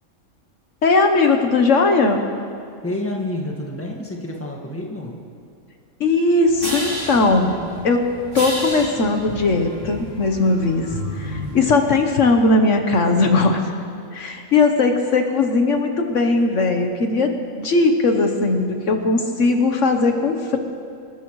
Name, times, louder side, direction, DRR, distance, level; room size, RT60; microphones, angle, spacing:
voice 1, 0.8-2.3 6.0-7.6 7.8-8.1 8.3-10.9 11.2-13.6 14.1-20.6, left 3 dB, 60° left, 4 dB, 1.4 m, -18 dB
voice 2, 2.8-5.2, left 1 dB, 10° left, 0 dB, 1.7 m, -28 dB
sound 1, 6.4-11.6, equal, 35° right, 3.3 m, -31 dB
26.0 x 13.5 x 3.2 m, 2.6 s
omnidirectional pair, 1.5 m